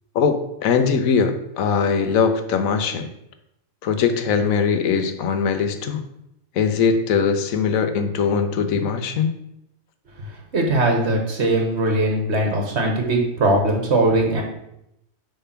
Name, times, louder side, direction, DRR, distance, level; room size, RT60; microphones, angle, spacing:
voice 1, 0.1-3.1 3.8-6.1 6.5-9.3, left 6 dB, 85° left, 9 dB, 1.1 m, -21 dB
voice 2, 10.5-14.4, right 2 dB, 55° right, 2 dB, 1.5 m, -20 dB
6.7 x 3.4 x 5.7 m, 0.81 s
omnidirectional pair, 1.4 m